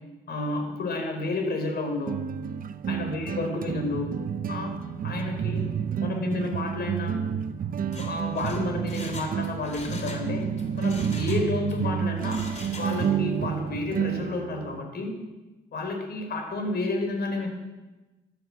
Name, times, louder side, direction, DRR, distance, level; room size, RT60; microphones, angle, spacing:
voice 1, 0.3-2.2 2.9-4.1 4.5-4.7 5.0-5.7 6.0-7.2 7.8-10.5 10.8-12.5 12.8-15.1 15.7-17.5, left 2 dB, 55° left, 3 dB, 4.7 m, -30 dB
sound 1, 1.2-1.3 2.1-14.8, right 8 dB, 45° right, 0.8 m, -30 dB
Mechanisms, 7.8-10.3 10.6-11.8 12.2-13.2 13.5-13.6, left 3 dB, 35° left, 3.4 m, -43 dB
14.0 x 12.5 x 7.5 m, 1.1 s
cardioid pair, 105°, 20 cm